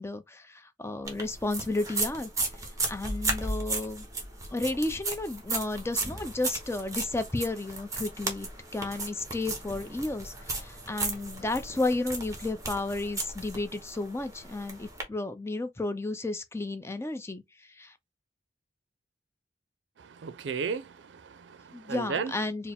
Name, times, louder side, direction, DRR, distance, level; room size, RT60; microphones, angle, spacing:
voice 1, 0.0-2.3 2.9-4.1 4.5-17.4 17.7-17.9 21.7-22.7, left 2 dB, 15° left, 0.5 m, -32 dB
sound 1, 1.1-15.0, right 2 dB, 20° right, 1.0 m, -35 dB
voice 2, 20.0-22.3, right 5 dB, 75° right, 0.4 m, -35 dB
4.6 x 2.0 x 3.5 m
head